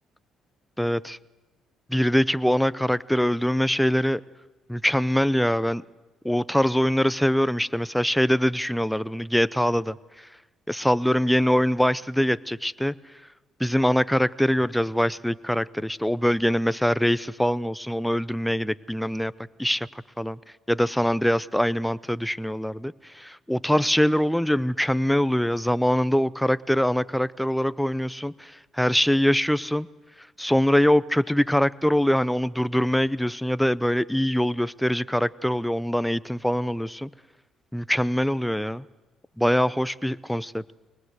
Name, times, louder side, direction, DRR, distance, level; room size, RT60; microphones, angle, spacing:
voice 1, 0.8-1.2 1.9-4.2 4.7-5.8 6.2-10.0 10.7-12.9 13.6-19.3 19.6-19.9 20.2-20.4 20.7-28.5 28.8-29.9 30.4-37.1 37.7-38.8 39.4-40.6, equal, 5° left, 17 dB, 0.6 m, -23 dB
22.5 x 19.5 x 8.0 m, 1.2 s
supercardioid pair, 75°, 0 cm